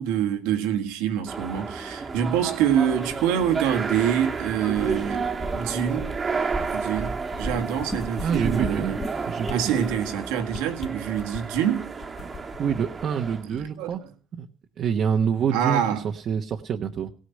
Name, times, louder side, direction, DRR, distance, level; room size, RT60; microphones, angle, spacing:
voice 1, 0.0-5.2 5.5-6.1 6.7-9.0 9.5-11.9 13.4-13.9 15.5-16.0, right 9 dB, 85° right, 1.7 m, -26 dB
sound 1, 1.3-13.5, right 4 dB, 30° right, 1.5 m, -32 dB
sound 2, 3.0-10.0, right 1 dB, ahead, 1.3 m, -37 dB
sound 3, 6.8-7.9 8.2-8.3 8.6-9.1 9.4-9.6 10.0-10.2 10.5-11.6 12.0-13.6 13.9-14.0, left 7 dB, 40° left, 1.4 m, -40 dB
voice 2, 8.2-9.0 9.3-9.8 12.6-14.0 14.4-14.5 14.8-17.1, right 7 dB, 50° right, 1.1 m, -26 dB
17.0 x 6.5 x 9.8 m
supercardioid pair, 95°, 0 cm